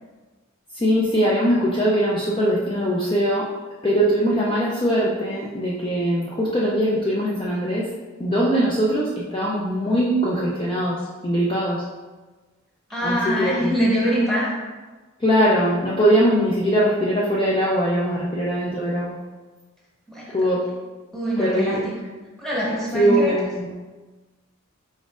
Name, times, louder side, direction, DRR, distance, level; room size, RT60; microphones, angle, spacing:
voice 1, 0.7-3.5 3.8-7.9 8.2-11.9 13.0-13.7 15.2-19.2 20.3-20.6 21.4-21.8 22.7-23.7, equal, 25° left, -5 dB, 0.5 m, -21 dB
voice 2, 12.9-14.5 20.1-20.3 21.1-21.8 22.4-23.3, equal, ahead, -7 dB, 1.2 m, -23 dB
4.8 x 4.2 x 2.5 m, 1.3 s
head